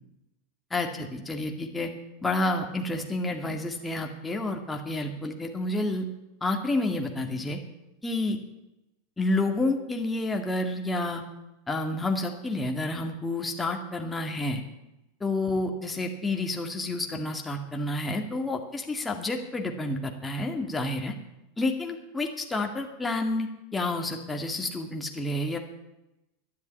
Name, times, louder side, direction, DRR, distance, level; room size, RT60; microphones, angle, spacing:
voice 1, 0.7-1.9 2.2-6.1 6.4-7.6 8.0-8.4 9.2-11.2 11.7-14.6 15.2-21.1 21.6-25.6, left 2 dB, 10° left, 3 dB, 2.1 m, -29 dB
12.0 x 11.0 x 8.8 m, 0.92 s
figure-of-eight pair, 85°, 0 cm